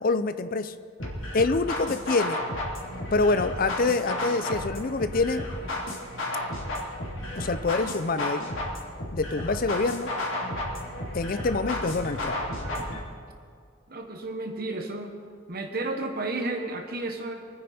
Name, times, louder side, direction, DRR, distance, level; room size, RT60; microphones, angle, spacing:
voice 1, 0.0-0.7 1.3-2.4 3.1-5.4 7.4-8.4 9.1-10.1 11.1-12.4, left 3 dB, 40° left, 12 dB, 0.5 m, -26 dB
sound 1, 1.0-13.0, left 1 dB, 65° left, 3.1 m, -33 dB
voice 2, 13.9-15.1 15.5-17.4, right 2 dB, 45° right, 4 dB, 1.2 m, -32 dB
25.0 x 9.7 x 4.3 m, 2.1 s
head